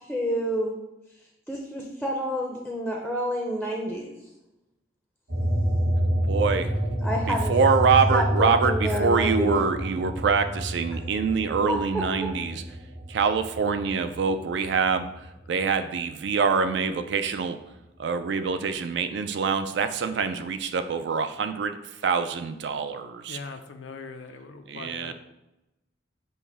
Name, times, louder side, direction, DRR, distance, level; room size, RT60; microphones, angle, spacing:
voice 1, 0.0-0.8 1.5-4.1 7.0-7.5 8.1-9.7 11.7-11.8, equal, ahead, -1 dB, 0.5 m, -28 dB
sound 1, 5.3-16.2 16.6-18.0, equal, 85° right, 1.4 m, -29 dB
voice 2, 6.3-6.8 7.3-12.6 13.1-17.6 18.0-21.8 22.0-23.4 24.7-25.1, right 5 dB, 70° right, 10 dB, 0.4 m, -25 dB
voice 3, 23.3-25.1, left 4 dB, 90° left, 7 dB, 0.4 m, -41 dB
5.5 x 2.1 x 4.6 m, 0.94 s
head